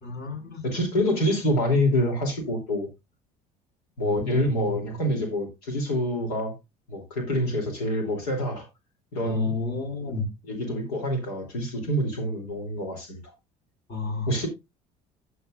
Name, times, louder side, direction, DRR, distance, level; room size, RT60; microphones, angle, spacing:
voice 1, 0.0-0.6 4.0-4.2 4.5-5.0 9.2-10.3 13.9-14.3, left 4 dB, 55° left, 5.3 m, -31 dB
voice 2, 0.6-2.9 4.0-6.5 6.9-8.7 9.1-9.5 10.4-13.2 14.3-14.5, equal, 85° left, 2.9 m, -26 dB
13.5 x 7.9 x 2.4 m
hypercardioid pair, 65°, 19 cm